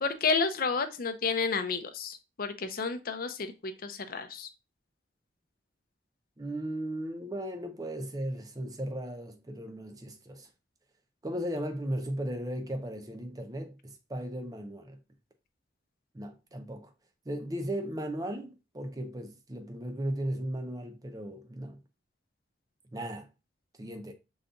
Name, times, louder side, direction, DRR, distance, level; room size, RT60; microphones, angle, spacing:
voice 1, 0.0-4.5, left 4 dB, 50° left, 0.6 m, -31 dB
voice 2, 6.4-10.5 11.2-15.0 16.1-16.9 17.3-21.8 22.9-23.3 23.8-24.1, right 1 dB, 20° right, 0.6 m, -36 dB
5.2 x 3.9 x 2.2 m
head